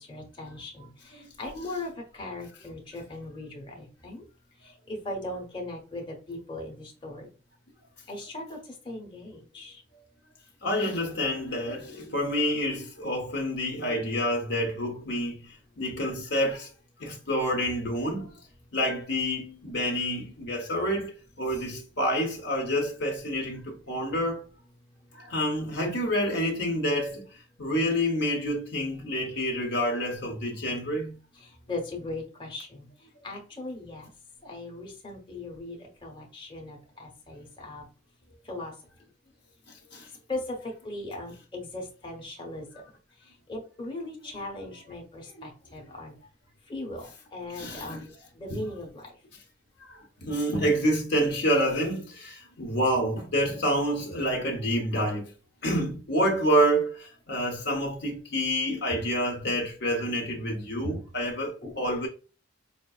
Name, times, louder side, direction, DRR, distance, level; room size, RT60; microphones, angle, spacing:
voice 1, 0.0-4.2 4.6-7.3 8.1-9.8 31.3-32.9 33.2-34.1 34.4-37.9 38.4-38.7 40.3-42.7 43.2-46.1 46.7-49.2 61.6-61.8, left 2 dB, 25° left, 1.0 m, -39 dB
voice 2, 10.6-16.7 17.0-18.3 18.7-24.4 25.1-31.2 39.9-40.1 47.6-48.0 48.5-48.6 49.8-55.3 55.6-62.1, equal, 50° left, 0.8 m, -28 dB
5.1 x 2.6 x 2.4 m
head